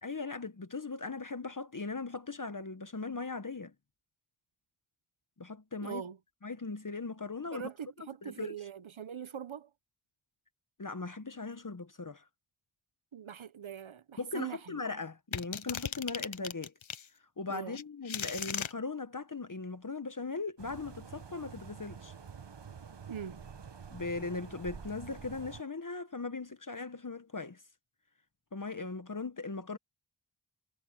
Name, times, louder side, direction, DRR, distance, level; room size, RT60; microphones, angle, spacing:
voice 1, 0.0-3.7 5.4-6.0 6.4-7.6 8.2-8.5 10.8-12.2 14.2-16.7 17.4-22.1 23.9-27.6 28.5-29.8, left 3 dB, 40° left, 1.3 m, -39 dB
voice 2, 5.8-6.2 7.5-9.7 13.1-14.8 17.5-17.8 23.1-23.4, right 8 dB, 70° right, 1.0 m, -42 dB
sound 1, 15.3-17.1 17.7-18.7, left 8 dB, 70° left, 1.0 m, -37 dB
sound 2, 20.6-25.6, right 6 dB, 55° right, 1.3 m, -48 dB
wide cardioid pair, 45°, 49 cm